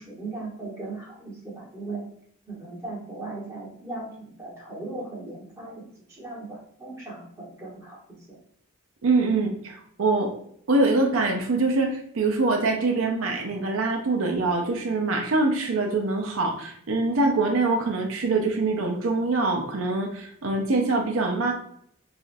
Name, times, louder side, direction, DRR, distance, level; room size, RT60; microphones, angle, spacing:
voice 1, 0.0-2.1 2.5-8.4, right 2 dB, 15° right, -5 dB, 1.2 m, -38 dB
voice 2, 9.0-10.3 10.7-21.5, right 3 dB, 70° right, 2 dB, 0.6 m, -24 dB
4.8 x 2.4 x 2.6 m, 0.67 s
head